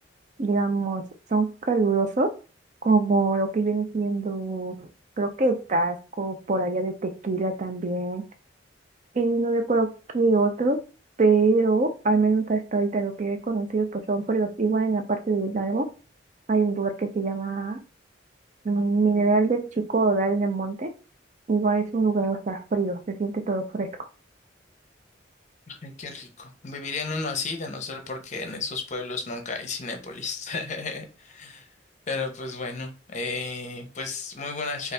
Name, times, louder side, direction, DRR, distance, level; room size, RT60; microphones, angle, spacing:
voice 1, 0.4-1.0 1.3-2.3 2.8-4.9 5.2-8.2 9.1-10.8 11.2-15.9 16.5-17.8 18.6-20.9 21.5-23.9, right 3 dB, 40° right, 0.5 m, -24 dB
voice 2, 25.7-31.7 32.1-34.9, left 4 dB, 40° left, 0.6 m, -33 dB
4.0 x 2.4 x 3.2 m
head